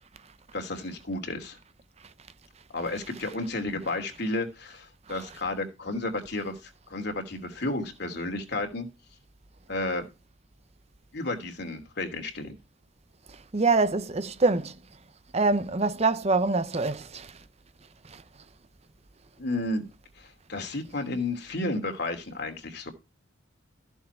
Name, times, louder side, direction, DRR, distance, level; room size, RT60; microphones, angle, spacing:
voice 1, 0.5-1.6 2.7-8.9 9.7-10.1 11.1-12.5 19.4-19.9 20.2-22.9, left 2 dB, 60° left, 3.0 m, -32 dB
voice 2, 13.3-14.8 15.3-17.4 18.1-18.2, right 3 dB, 35° right, 0.8 m, -25 dB
14.0 x 7.2 x 4.5 m
head